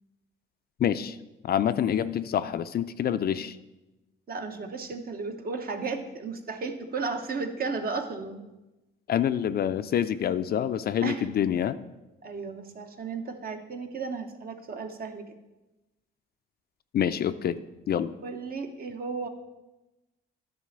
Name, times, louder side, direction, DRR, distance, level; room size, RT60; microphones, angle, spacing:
voice 1, 0.8-1.2 1.4-3.6 9.1-11.8 16.9-17.6 17.9-18.1, left 9 dB, 50° left, 12 dB, 0.4 m, -26 dB
voice 2, 4.3-8.4 11.0-11.3 12.2-15.2 18.2-19.3, right 4 dB, 50° right, 6 dB, 1.1 m, -34 dB
10.5 x 4.3 x 6.7 m, 1.0 s
cardioid pair, 90°, 20 cm